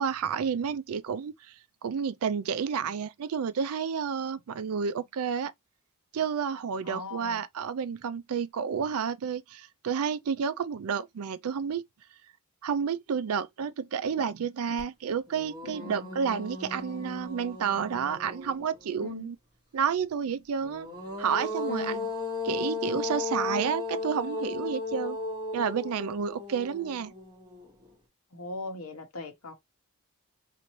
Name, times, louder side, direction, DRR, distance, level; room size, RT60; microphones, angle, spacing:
voice 1, 0.0-1.3 1.8-5.5 6.1-11.8 12.6-19.4 19.7-20.9 21.2-22.0 22.4-25.2 25.5-27.1, right 7 dB, 75° right, 0.4 m, -30 dB
voice 2, 6.8-7.4 15.7-16.1 19.0-19.3 21.7-22.1 28.3-29.5, left 2 dB, 70° left, 1.0 m, -40 dB
sound 1, 14.8-14.9 15.3-18.9 20.6-27.9, left 3 dB, 20° right, 1.9 m, -36 dB
4.1 x 2.6 x 3.0 m
head